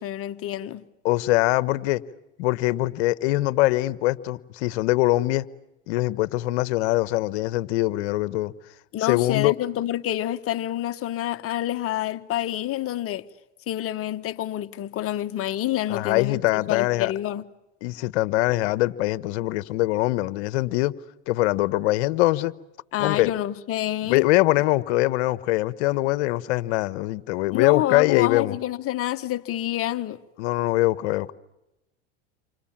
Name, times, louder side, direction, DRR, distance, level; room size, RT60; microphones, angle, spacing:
voice 1, 0.0-0.9 8.9-13.2 13.7-17.4 22.9-24.3 27.5-30.2, left 13 dB, 40° left, 1.4 m, -28 dB
voice 2, 1.0-2.0 2.4-5.5 5.9-8.5 9.0-9.5 15.9-17.1 17.8-21.0 21.3-22.5 23.0-23.3 24.0-28.6 30.4-31.3, left 18 dB, 65° left, 1.2 m, -23 dB
29.5 x 25.5 x 7.5 m
hypercardioid pair, 100°, 35 cm